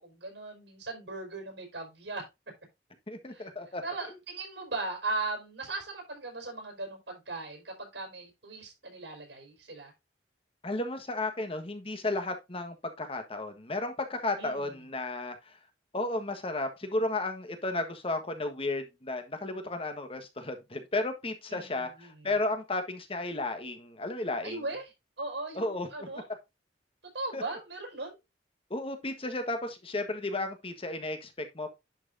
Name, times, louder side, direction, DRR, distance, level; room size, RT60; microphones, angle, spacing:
voice 1, 0.0-2.3 3.3-3.5 3.8-9.9 14.4-14.7 21.5-22.3 24.4-26.3 27.1-28.2, right 3 dB, 85° right, 4.9 m, -38 dB
voice 2, 3.1-3.8 10.6-15.6 15.9-24.6 25.5-26.2 27.3-27.4 28.7-31.7, left 2 dB, 30° left, 1.4 m, -33 dB
10.5 x 5.7 x 2.7 m
head